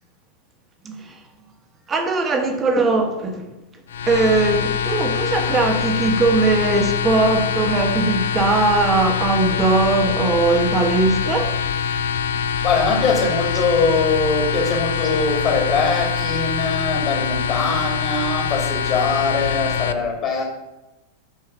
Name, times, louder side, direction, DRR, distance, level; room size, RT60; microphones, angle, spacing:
voice 1, 0.8-1.2 1.9-3.5 4.0-11.5 16.2-16.3, right 3 dB, 20° right, 1.4 m, -20 dB
sound 1, 3.9-19.9, left 7 dB, 60° left, 0.4 m, -24 dB
voice 2, 12.6-20.4, left 4 dB, 35° left, 1.8 m, -22 dB
7.4 x 4.6 x 5.5 m
figure-of-eight pair, 90°, 0 cm